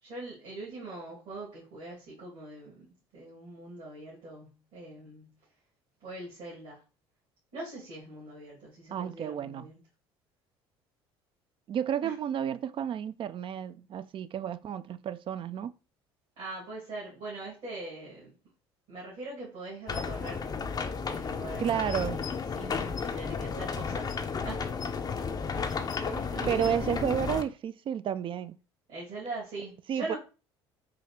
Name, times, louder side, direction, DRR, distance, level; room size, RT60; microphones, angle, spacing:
voice 1, 0.0-2.9 3.1-5.3 6.0-6.8 7.5-9.7 12.0-12.1 16.4-18.3 18.9-20.4 21.1-22.3 22.5-24.1 24.4-24.7 25.5-26.8 28.9-30.2, right 2 dB, 65° right, 2.1 m, -42 dB
voice 2, 8.9-9.7 11.7-15.7 21.6-22.2 26.5-28.6 29.9-30.1, right 9 dB, 40° right, 0.4 m, -31 dB
sound 1, 19.9-27.4, left 5 dB, 30° left, 0.5 m, -33 dB
4.9 x 2.8 x 3.0 m
hypercardioid pair, 60°, 14 cm